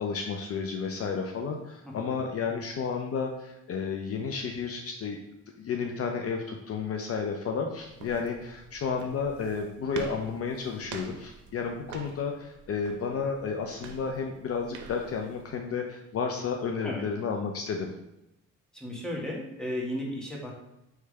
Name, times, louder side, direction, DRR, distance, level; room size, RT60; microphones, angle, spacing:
voice 1, 0.0-5.2 5.6-17.9, left 5 dB, 50° left, 3 dB, 0.5 m, -32 dB
voice 2, 1.8-2.2 16.8-17.0 18.7-20.5, left 1 dB, ahead, -3 dB, 1.3 m, -35 dB
sound 1, 7.8-15.6, right 5 dB, 75° right, 0.7 m, -46 dB
3.3 x 3.2 x 4.7 m, 0.86 s
cardioid pair, 90°, 30 cm